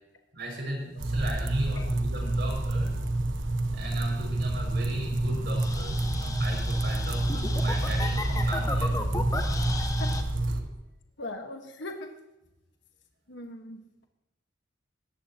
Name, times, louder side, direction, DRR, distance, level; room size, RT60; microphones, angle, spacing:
voice 1, 0.3-2.9 3.7-8.9 10.5-10.7, right 1 dB, 60° right, 0 dB, 6.0 m, -36 dB
voice 2, 0.9-1.3 1.7-1.9 9.8-10.2 11.2-12.2 13.3-13.8, left 2 dB, 70° left, 4 dB, 1.5 m, -40 dB
sound 1, 1.0-10.6, right 2 dB, 80° right, 1.2 m, -28 dB
sound 2, 4.1-10.2, left 1 dB, 20° left, 1.1 m, -34 dB
19.5 x 14.5 x 2.9 m, 0.95 s
head